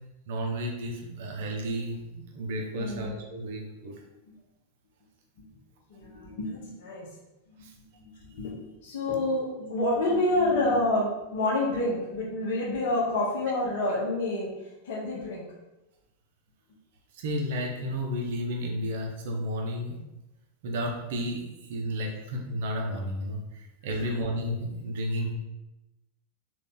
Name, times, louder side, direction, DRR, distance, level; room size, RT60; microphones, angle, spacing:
voice 1, 0.3-4.0 7.6-7.7 17.1-20.0 20.6-25.3, equal, 55° right, 1 dB, 0.7 m, -32 dB
voice 2, 2.8-3.1 4.3-4.4 5.4-5.5 5.9-7.1 7.5-7.7 7.9-14.5 14.8-15.4 24.0-24.1, left 2 dB, 55° left, -3 dB, 0.9 m, -28 dB
3.8 x 2.5 x 3.6 m, 0.98 s
figure-of-eight pair, 90°, 0 cm